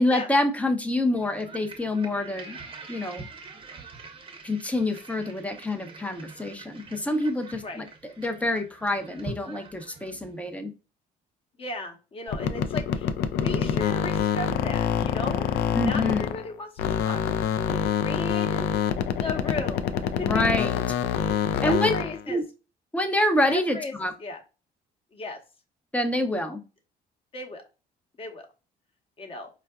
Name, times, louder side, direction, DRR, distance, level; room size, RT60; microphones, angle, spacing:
voice 1, 0.0-2.6 2.9-3.3 4.4-7.9 8.2-10.7 15.7-16.3 20.2-20.8 21.6-21.9 22.3-22.4 22.9-24.1 25.9-26.6, left 1 dB, 10° left, 6 dB, 0.5 m, -26 dB
sound 1, 1.1-10.5, right 4 dB, 30° right, 0.7 m, -44 dB
voice 2, 11.6-13.1 13.4-15.5 15.8-17.2 18.0-18.6 19.1-20.8 21.6-22.4 23.5-23.9 24.2-24.4 25.1-25.4 27.3-27.6 28.2-28.5 29.2-29.5, left 2 dB, 35° left, 2 dB, 0.8 m, -35 dB
sound 2, 12.3-16.5 16.8-22.2, left 8 dB, 75° left, 0.4 m, -26 dB
4.4 x 2.4 x 2.2 m, 0.31 s
cardioid pair, 110°, 17 cm